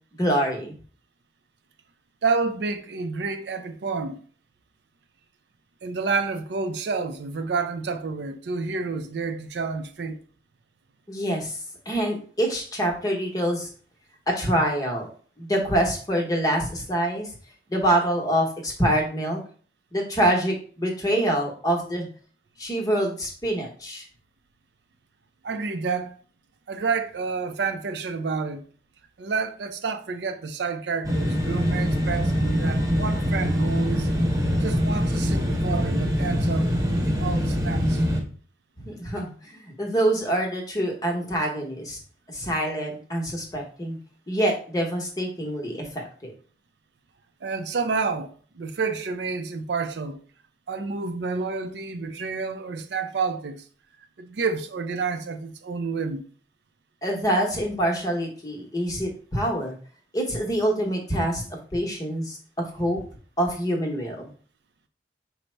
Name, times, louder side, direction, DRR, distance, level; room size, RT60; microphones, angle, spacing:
voice 1, 0.2-0.8 11.1-11.6 11.9-13.7 14.3-15.1 15.4-17.3 17.7-19.4 19.9-22.1 22.6-24.1 38.8-42.0 42.3-44.0 44.3-46.3 57.0-59.7 60.1-61.4 61.7-63.0 63.4-64.3, right 1 dB, 20° left, 0.9 m, -25 dB
voice 2, 2.2-4.2 5.8-10.2 25.4-26.2 26.7-28.6 29.2-34.1 34.6-38.0 47.4-50.2 50.7-53.7 54.2-56.3, right 4 dB, 70° right, 0.5 m, -29 dB
sound 1, 31.0-38.2, equal, 20° right, 0.7 m, -24 dB
5.2 x 2.0 x 4.4 m
head